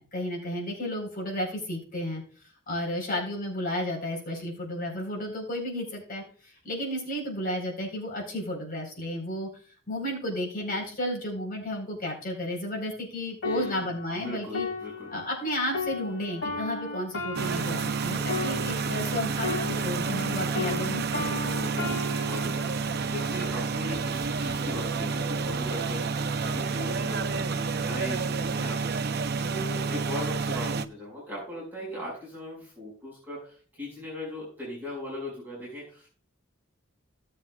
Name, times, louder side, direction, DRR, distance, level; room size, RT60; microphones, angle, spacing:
voice 1, 0.0-2.2 2.7-9.5 9.9-14.7 15.1-21.3 21.8-22.0, left 1 dB, 45° left, 0 dB, 4.2 m, -33 dB
sound 1, 13.4-20.3 20.5-24.1 24.8-25.0, left 3 dB, 65° left, 2.4 m, -36 dB
voice 2, 13.4-13.9 14.2-15.1 18.4-18.9 21.4-36.1, left 1 dB, 10° right, -5 dB, 5.4 m, -39 dB
sound 2, 17.3-30.8, right 4 dB, 50° right, 0.6 m, -29 dB
17.5 x 7.6 x 2.4 m, 0.41 s
head